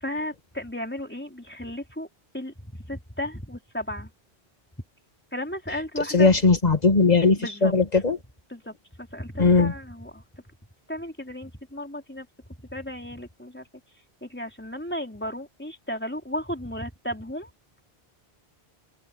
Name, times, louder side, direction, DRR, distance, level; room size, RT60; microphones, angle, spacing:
voice 1, 0.0-2.1 2.3-4.1 5.3-6.3 7.4-7.7 8.5-10.4 10.9-12.3 12.6-13.6 14.2-17.5, left 1 dB, 10° left, 4.0 m, -34 dB
voice 2, 6.1-8.2 9.4-9.7, left 4 dB, 40° left, 1.8 m, -19 dB
omnidirectional pair, 1.1 m